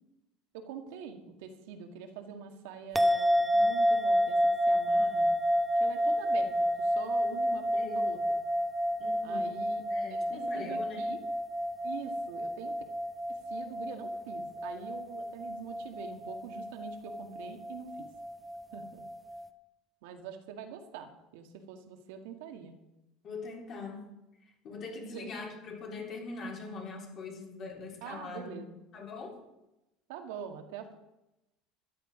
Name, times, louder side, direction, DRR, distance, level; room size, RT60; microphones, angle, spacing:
voice 1, 0.5-4.4 4.7-5.3 5.8-8.2 9.2-9.8 10.1-10.2 10.5-11.2 11.8-12.7 13.3-18.1 18.7-19.0 20.0-22.7 25.0-25.3 28.0-28.8 30.1-31.0, right 7 dB, 85° right, 6 dB, 2.0 m, -44 dB
sound 1, 2.9-19.5, equal, 5° right, 1.0 m, -30 dB
voice 2, 7.8-8.1 9.0-9.6 9.9-11.1 23.2-24.0 24.4-28.6 28.9-29.4, left 4 dB, 40° left, -1 dB, 4.0 m, -42 dB
13.0 x 11.5 x 5.1 m, 0.93 s
cardioid pair, 145°, 0 cm